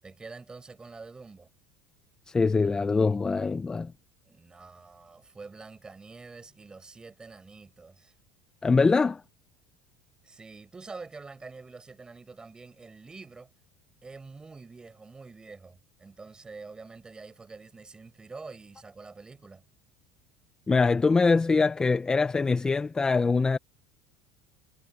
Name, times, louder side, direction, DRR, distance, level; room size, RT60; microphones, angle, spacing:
voice 1, 0.0-1.5 4.3-8.1 10.2-13.5 14.0-19.7, right 4 dB, 15° right, 6.6 m, -46 dB
voice 2, 2.3-3.9 8.6-9.2 20.7-23.6, left 4 dB, 15° left, 0.6 m, -23 dB
supercardioid pair, 125°, 5 cm